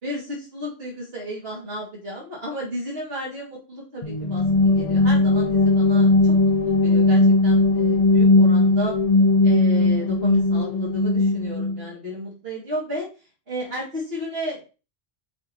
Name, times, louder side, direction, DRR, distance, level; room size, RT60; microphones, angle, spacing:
voice 1, 0.0-8.9 9.4-13.1 13.5-14.6, equal, 65° right, -5 dB, 2.6 m, -33 dB
sound 1, 4.0-11.8, left 2 dB, 40° left, 0.8 m, -18 dB
6.4 x 4.1 x 4.6 m, 0.33 s
omnidirectional pair, 1.1 m